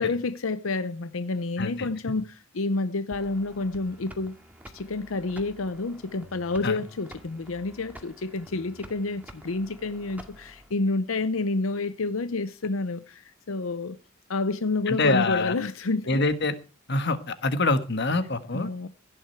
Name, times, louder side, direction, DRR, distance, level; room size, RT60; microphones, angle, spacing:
voice 1, 0.0-4.3 4.7-14.0 14.3-16.3 18.5-18.9, left 3 dB, 85° left, 0.7 m, -29 dB
voice 2, 1.6-1.9 6.6-6.8 14.9-15.5 16.1-16.5 16.9-18.7, left 3 dB, 55° left, 1.5 m, -25 dB
sound 1, 3.1-10.7, equal, 10° right, 2.0 m, -49 dB
16.0 x 10.0 x 4.6 m
head